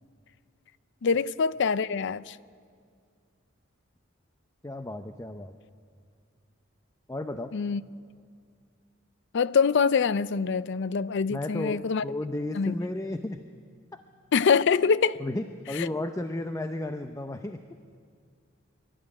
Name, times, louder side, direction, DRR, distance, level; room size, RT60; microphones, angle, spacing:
voice 1, 1.0-2.4 7.5-7.8 9.3-12.0 12.5-12.7 14.3-15.2 15.8-15.9, left 5 dB, 60° left, 0.5 m, -24 dB
voice 2, 4.6-5.5 7.1-7.5 11.3-13.4 13.9-14.0 15.2-17.6, left 1 dB, 15° left, 0.6 m, -33 dB
25.0 x 12.5 x 9.8 m
head